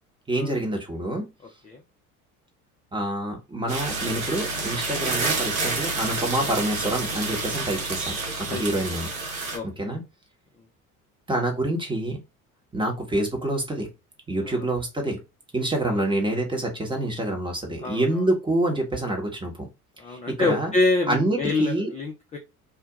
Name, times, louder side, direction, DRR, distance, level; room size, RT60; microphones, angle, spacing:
voice 1, 0.3-1.3 2.9-9.1 9.6-10.0 11.3-12.2 12.7-13.9 14.3-15.2 15.5-19.7 20.1-20.7 21.1-21.9, right 1 dB, 10° right, 1 dB, 1.0 m, -27 dB
sound 1, 3.7-9.6, right 3 dB, 75° right, 1.0 m, -29 dB
voice 2, 9.5-9.9 14.4-14.6 15.8-16.0 17.8-18.2 20.0-22.4, left 3 dB, 15° left, 1 dB, 0.5 m, -26 dB
2.4 x 2.2 x 2.9 m, 0.25 s
figure-of-eight pair, 60°, 43 cm